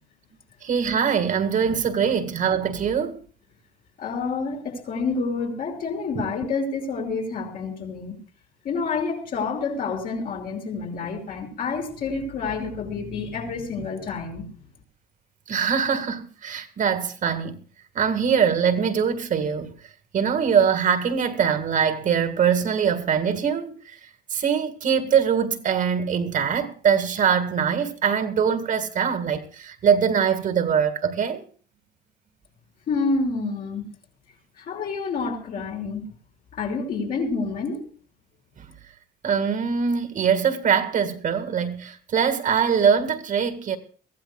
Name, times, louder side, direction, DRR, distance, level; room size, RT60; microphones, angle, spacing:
voice 1, 0.6-3.2 15.5-17.6 18.0-19.7 20.1-23.8 24.3-31.4 39.2-43.8, right 7 dB, 50° right, 2.0 m, -22 dB
voice 2, 4.0-8.2 8.6-14.5 32.9-33.8 34.7-36.0 36.5-37.8, left 4 dB, 60° left, 5.3 m, -28 dB
23.5 x 15.0 x 2.3 m
cardioid pair, 110°, 17 cm